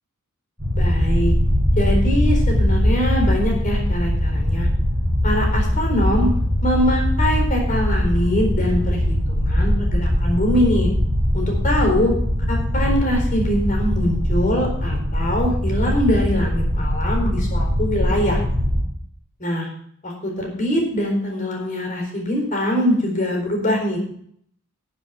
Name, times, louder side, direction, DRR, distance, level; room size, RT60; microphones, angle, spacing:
sound 1, 0.6-18.8, equal, 5° right, 6.3 m, -21 dB
voice 1, 0.7-1.3 1.8-4.7 5.2-6.3 6.6-10.9 11.3-12.1 12.5-18.4 19.4-19.7 20.0-24.0, equal, 40° left, 1 dB, 4.4 m, -23 dB
13.0 x 7.6 x 6.0 m, 0.65 s
head